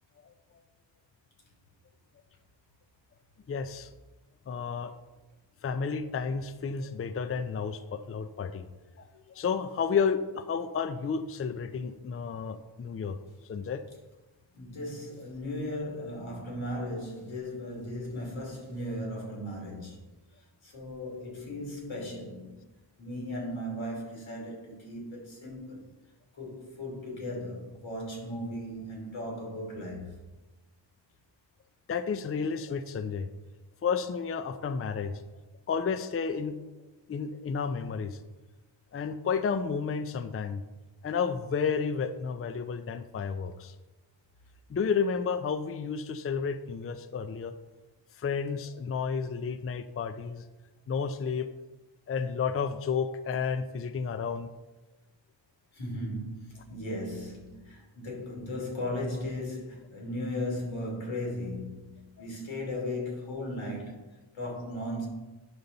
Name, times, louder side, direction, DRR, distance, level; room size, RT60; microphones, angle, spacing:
voice 1, 3.5-3.9 4.5-4.9 5.6-8.7 9.0-13.2 13.4-13.8 31.9-33.3 33.8-35.2 35.7-36.6 37.1-38.2 38.9-40.6 41.0-43.7 44.7-47.5 48.2-50.4 50.9-51.5 52.1-54.5, left 6 dB, 30° left, 0.5 m, -31 dB
voice 2, 14.5-20.0 20.6-22.5 23.0-25.9 26.4-30.1 55.7-64.1 64.3-65.1, left 1 dB, 90° left, 3.1 m, -36 dB
9.6 x 6.9 x 3.9 m
wide cardioid pair, 85°, 46 cm